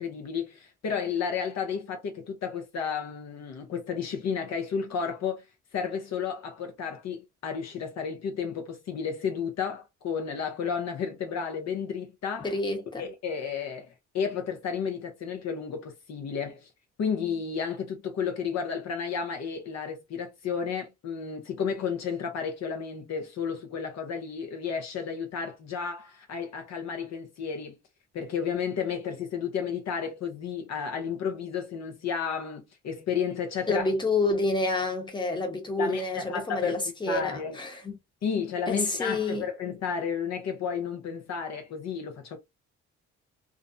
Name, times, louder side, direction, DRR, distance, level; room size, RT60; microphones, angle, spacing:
voice 1, 0.0-5.4 5.7-12.5 13.0-16.7 17.0-27.8 28.1-33.9 35.8-36.8 37.1-37.6 38.2-42.4, left 6 dB, 60° left, 0.7 m, -32 dB
voice 2, 12.4-13.0 33.7-38.0 38.7-39.4, left 2 dB, 15° left, 0.9 m, -28 dB
2.5 x 2.0 x 2.5 m
cardioid pair, 90°, 30 cm